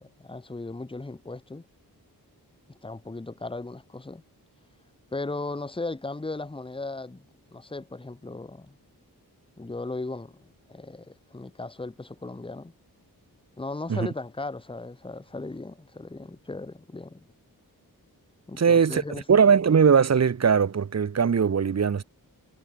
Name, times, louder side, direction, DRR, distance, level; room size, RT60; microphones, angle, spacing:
voice 1, 0.0-1.6 2.7-4.2 5.1-7.2 7.5-8.8 9.6-12.7 13.6-17.3 18.5-19.2, left 2 dB, 15° left, 1.1 m, -37 dB
voice 2, 18.6-19.0 19.3-22.0, right 6 dB, 45° right, 1.0 m, -20 dB
wide cardioid pair, 150°, 37 cm